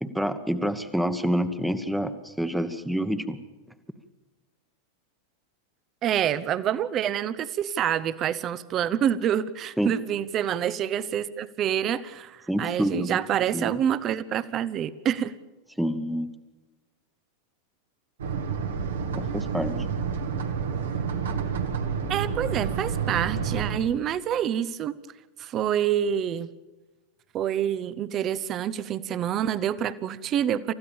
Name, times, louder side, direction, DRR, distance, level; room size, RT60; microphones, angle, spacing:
voice 1, 0.0-3.4 9.8-9.9 12.5-13.2 13.5-13.7 15.8-16.3 19.1-19.9, equal, ahead, 11 dB, 1.3 m, -27 dB
voice 2, 6.0-15.3 22.1-25.0 25.4-26.5 27.3-30.7, right 10 dB, 30° right, 16 dB, 1.0 m, -27 dB
sound 1, 18.2-23.8, right 6 dB, 65° right, 1.9 m, -29 dB
28.5 x 15.0 x 7.2 m, 1.2 s
figure-of-eight pair, 90°, 0 cm